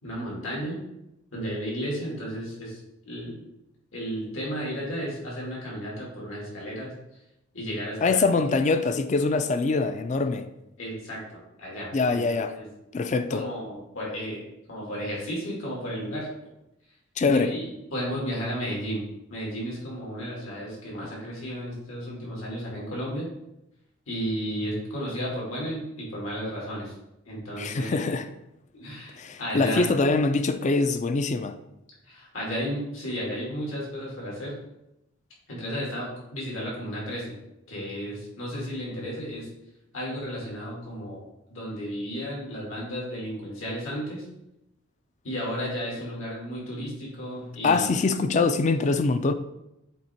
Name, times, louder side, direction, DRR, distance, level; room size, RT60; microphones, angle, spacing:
voice 1, 0.0-0.8 1.3-3.4 3.9-6.9 7.5-8.3 10.8-12.2 12.5-12.7 13.3-16.3 17.3-19.0 19.3-23.3 24.1-26.9 27.3-28.1 28.8-29.8 32.0-34.5 35.5-37.3 37.7-39.5 39.9-41.2 41.5-44.2 45.2-47.9, equal, 80° left, 2.5 m, -33 dB
voice 2, 8.0-10.5 11.9-12.5 12.9-13.4 17.2-17.5 27.6-28.3 29.2-31.5 47.6-49.3, left 3 dB, 35° left, 0.4 m, -24 dB
7.4 x 3.4 x 4.4 m
head